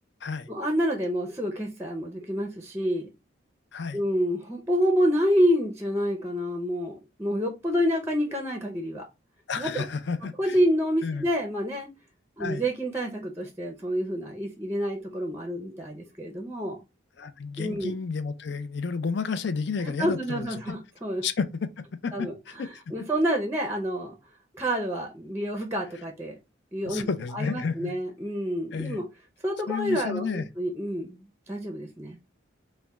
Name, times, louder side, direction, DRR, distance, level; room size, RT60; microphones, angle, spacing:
voice 1, 0.5-3.1 3.9-9.0 9.6-9.8 10.4-11.9 12.4-16.8 17.6-18.0 19.8-21.2 22.1-24.1 24.5-26.3 26.7-27.1 27.3-29.1 29.4-32.2, equal, 10° right, 0.5 m, -28 dB
voice 2, 9.5-10.6 11.0-11.3 12.4-12.6 17.2-20.5 21.2-22.7 26.8-28.0 28.7-29.0 29.7-30.5, left 5 dB, 60° left, 0.4 m, -31 dB
4.1 x 2.1 x 3.4 m
head